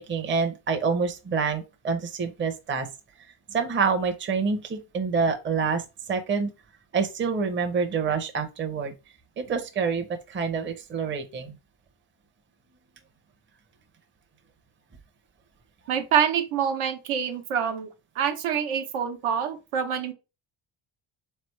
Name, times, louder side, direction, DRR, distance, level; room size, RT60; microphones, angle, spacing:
voice 1, 0.0-2.9 3.5-5.8 6.1-6.5 6.9-8.9 9.4-11.6, right 5 dB, 25° right, 0.6 m, -27 dB
voice 2, 15.9-17.9 18.2-20.1, right 8 dB, 80° right, 1.0 m, -26 dB
3.8 x 3.3 x 3.1 m
cardioid pair, 120°, 50 cm